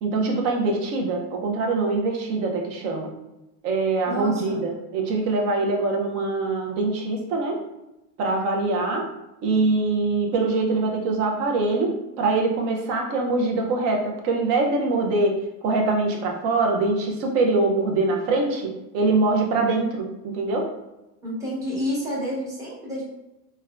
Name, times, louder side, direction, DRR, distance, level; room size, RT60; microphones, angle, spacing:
voice 1, 0.0-3.1 3.6-7.6 8.2-9.1 9.4-20.7, right 3 dB, 35° right, 1 dB, 0.4 m, -23 dB
voice 2, 4.0-4.6 21.2-23.0, equal, 5° right, -8 dB, 0.8 m, -29 dB
3.4 x 2.1 x 2.2 m, 0.95 s
supercardioid pair, 140°, 47 cm